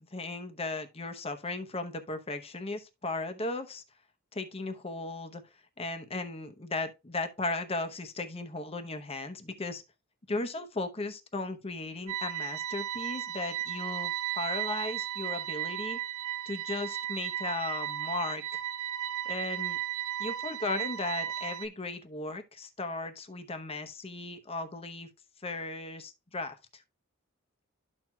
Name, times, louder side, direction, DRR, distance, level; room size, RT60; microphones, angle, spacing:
voice 1, 0.1-3.8 4.3-5.4 5.8-9.8 10.3-16.0 16.5-18.6 19.3-19.8 20.2-25.1 25.4-26.6, left 2 dB, 25° left, 0.8 m, -36 dB
sound 1, 12.1-21.7, right 12 dB, 70° right, 0.6 m, -35 dB
13.0 x 4.5 x 2.3 m
head